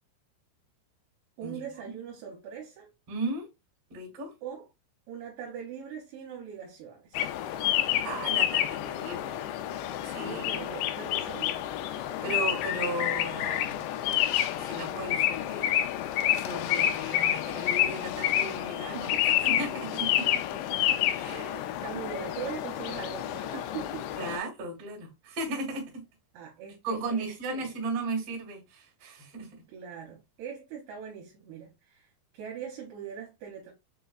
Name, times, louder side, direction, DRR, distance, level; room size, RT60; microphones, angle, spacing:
voice 1, 1.4-2.9 4.4-4.7 5.1-7.3 10.2-11.7 18.9-19.5 19.8-19.9 21.3-24.1 26.3-27.7 29.7-33.7, right 8 dB, 75° right, 2.6 m, -41 dB
voice 2, 3.1-3.5 3.9-4.3 8.0-9.4 10.0-10.5 11.9-13.8 14.5-15.8 16.2-20.3 21.2-21.5 24.1-26.0 26.8-29.6, right 2 dB, 50° right, 2.0 m, -36 dB
sound 1, 7.2-24.4, left 12 dB, 85° left, 2.7 m, -29 dB
6.5 x 2.3 x 2.3 m
omnidirectional pair, 4.9 m